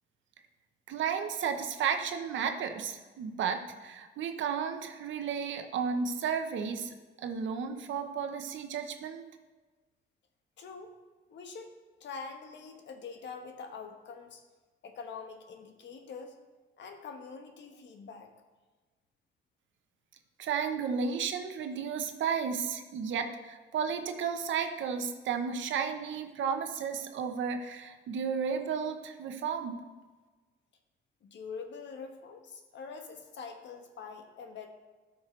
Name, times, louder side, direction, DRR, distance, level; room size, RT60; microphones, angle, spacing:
voice 1, 0.9-6.9 7.2-9.2 20.4-29.8, right 6 dB, 75° right, 6 dB, 1.0 m, -33 dB
voice 2, 10.6-10.9 11.3-14.4 14.8-16.4 16.8-18.3 31.2-34.7, left 5 dB, 65° left, 5 dB, 1.2 m, -44 dB
13.5 x 5.9 x 3.2 m, 1.3 s
cardioid pair, 90°, 20 cm